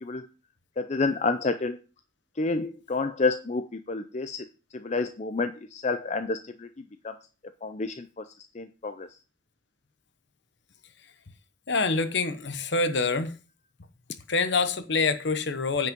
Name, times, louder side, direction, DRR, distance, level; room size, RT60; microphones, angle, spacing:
voice 1, 0.8-1.8 2.4-4.5 4.7-6.7 7.0-7.1 7.6-8.2 8.5-9.1, left 3 dB, 35° left, 0.5 m, -29 dB
voice 2, 11.7-13.3 14.3-15.9, left 4 dB, 60° left, 0.9 m, -26 dB
9.4 x 5.6 x 5.2 m
head